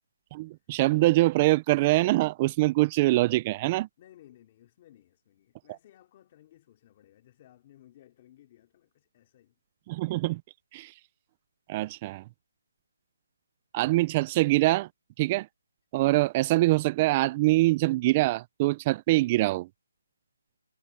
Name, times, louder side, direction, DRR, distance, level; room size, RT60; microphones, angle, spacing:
voice 1, 0.3-3.9 9.9-10.4 10.7-10.9 11.7-12.2 13.7-14.9 15.2-15.5 15.9-19.7, right 19 dB, 15° right, 0.3 m, -24 dB
voice 2, 4.0-9.6, left 13 dB, 20° left, 2.9 m, -58 dB
hypercardioid pair, 175°, 0 cm